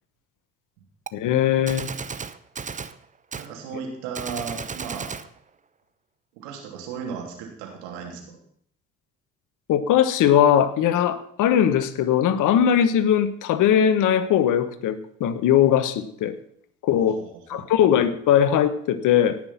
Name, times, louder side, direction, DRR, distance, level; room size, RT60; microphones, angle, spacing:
voice 1, 1.1-1.9 9.7-16.3 16.8-17.2 17.5-19.4, left 9 dB, 60° left, 13 dB, 1.2 m, -20 dB
Gunshot gunfire, 1.1-1.2 1.7-3.0 3.3-3.5 4.1-5.3, right 5 dB, 20° right, 0.8 m, -34 dB
voice 2, 3.3-5.1 6.4-8.4 17.0-17.6, right 6 dB, 75° right, 0 dB, 3.1 m, -36 dB
17.5 x 6.2 x 5.8 m, 0.66 s
hypercardioid pair, 55°, 35 cm